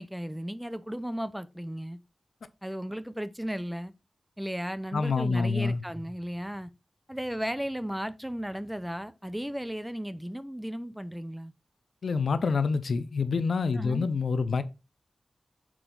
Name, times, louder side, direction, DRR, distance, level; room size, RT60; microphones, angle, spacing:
voice 1, 0.0-2.0 2.6-3.9 4.4-6.7 7.1-11.5 13.7-14.1, equal, 5° right, 0.5 m, -35 dB
voice 2, 4.9-5.8 12.0-14.6, left 4 dB, 85° left, 0.5 m, -27 dB
6.1 x 4.4 x 3.8 m
wide cardioid pair, 80°, 0 cm